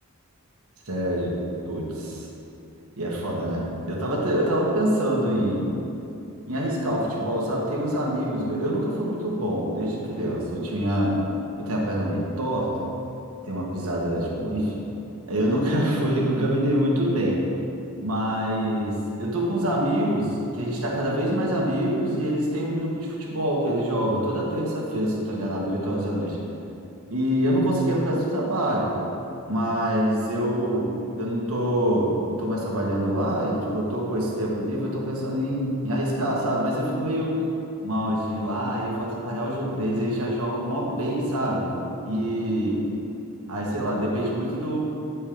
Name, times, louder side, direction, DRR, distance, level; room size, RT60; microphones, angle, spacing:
voice 1, 0.8-1.4 1.7-2.3 3.0-5.7 6.5-11.2 11.6-12.7 13.4-14.8 15.3-17.4 18.0-26.4 27.1-28.9 29.4-30.9 31.2-37.4 37.8-41.7 42.0-42.9 43.5-44.8, equal, 75° right, -3 dB, 1.6 m, -25 dB
9.8 x 4.6 x 5.1 m, 2.8 s
head